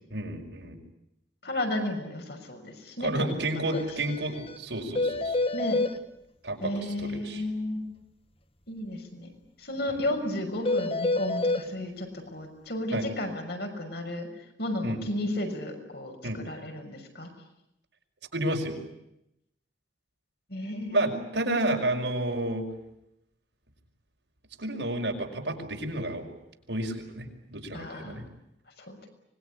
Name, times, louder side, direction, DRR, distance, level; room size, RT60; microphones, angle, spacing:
voice 1, 0.1-0.8 3.0-5.4 6.4-7.4 12.9-13.0 14.8-15.0 16.2-16.4 18.3-18.8 20.9-22.7 24.6-26.2 26.7-28.2, right 1 dB, 75° right, 2 dB, 5.6 m, -30 dB
voice 2, 1.4-3.4 3.7-3.8 5.5-5.8 6.6-7.9 8.7-9.3 9.6-14.3 14.6-17.3 20.5-21.3 27.7-28.2 28.8-29.1, left 1 dB, 60° left, 4 dB, 6.3 m, -33 dB
sound 1, 3.7-3.8 4.1-4.2 4.5-4.6 5.0-5.9 10.7-11.6, left 2 dB, 30° left, 1.6 m, -27 dB
25.5 x 21.5 x 10.0 m, 0.82 s
head